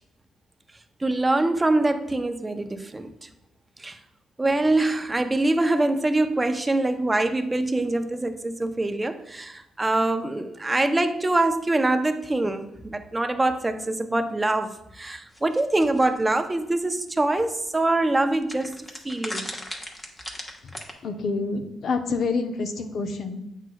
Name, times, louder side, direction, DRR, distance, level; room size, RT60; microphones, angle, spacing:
voice 1, 1.0-3.3 3.8-4.0 4.4-18.7 19.0-19.5, right 2 dB, 15° right, 8 dB, 0.6 m, -24 dB
sound 1, 15.3-16.1 17.1-17.2 17.4-17.5 18.5-20.9, left 1 dB, 20° left, 1.1 m, -36 dB
voice 2, 21.0-23.4, left 4 dB, 60° left, 7 dB, 0.7 m, -27 dB
8.0 x 6.0 x 2.3 m, 0.82 s
cardioid pair, 90°, 0 cm